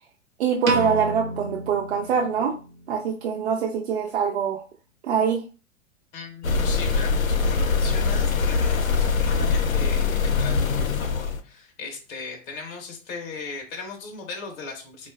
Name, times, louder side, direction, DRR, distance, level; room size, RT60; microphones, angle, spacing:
voice 1, 0.4-2.5 2.9-4.6 5.0-5.4, right 7 dB, 55° right, 0 dB, 0.6 m, -24 dB
Piano, 0.6-2.9, right 2 dB, 85° right, 0.8 m, -29 dB
voice 2, 6.1-15.1, left 4 dB, 15° left, 1 dB, 0.5 m, -38 dB
sound 1, 6.4-11.4, left 5 dB, 85° left, 0.5 m, -23 dB
4.0 x 2.3 x 2.3 m, 0.35 s
figure-of-eight pair, 105°, 40 cm